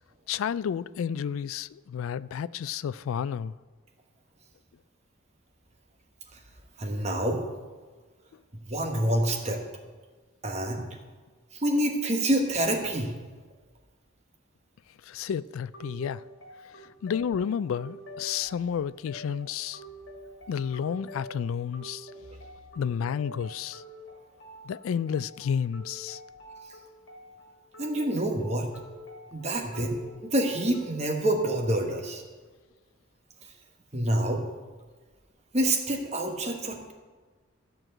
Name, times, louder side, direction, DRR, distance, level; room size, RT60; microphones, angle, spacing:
voice 1, 0.3-3.5 15.0-16.2 16.8-19.8 20.5-22.1 22.8-23.8 24.6-26.2, left 7 dB, 80° left, 0.3 m, -31 dB
voice 2, 6.8-7.4 8.7-9.6 10.4-10.8 11.5-13.1 27.8-28.7 29.3-32.2 33.9-34.4 35.5-36.9, right 1 dB, 30° right, 1.2 m, -27 dB
sound 1, 15.7-31.7, equal, 65° left, 2.2 m, -47 dB
13.5 x 4.6 x 7.7 m
head